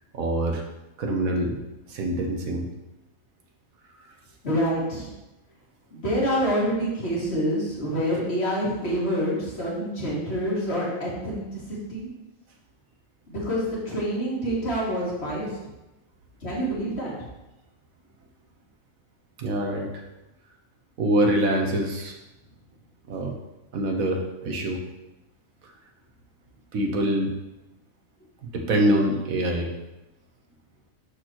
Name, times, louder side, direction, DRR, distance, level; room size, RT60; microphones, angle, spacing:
voice 1, 0.1-0.6 1.0-1.6 1.9-2.7 19.4-19.9 21.0-22.1 23.1-23.3 23.7-24.8 26.7-27.3 28.5-29.7, right 1 dB, 75° right, 2 dB, 1.5 m, -24 dB
voice 2, 4.4-5.1 5.9-12.1 13.3-15.5 16.4-17.1, equal, 50° left, -6 dB, 2.5 m, -27 dB
11.5 x 4.4 x 3.0 m, 0.98 s
omnidirectional pair, 1.4 m